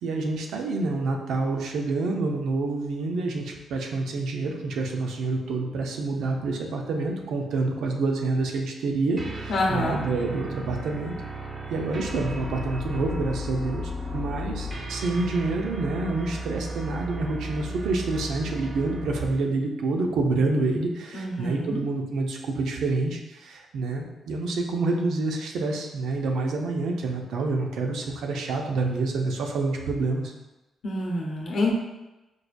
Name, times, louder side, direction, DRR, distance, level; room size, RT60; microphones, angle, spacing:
voice 1, 0.0-11.2 11.7-30.3, right 3 dB, 80° right, 2 dB, 0.5 m, -27 dB
sound 1, 9.2-19.5, equal, 30° right, 0.5 m, -35 dB
voice 2, 9.5-10.0 21.1-21.8 30.8-31.7, left 2 dB, 65° left, -1 dB, 0.7 m, -27 dB
4.7 x 2.5 x 2.2 m, 1.0 s
cardioid pair, 95°, 0 cm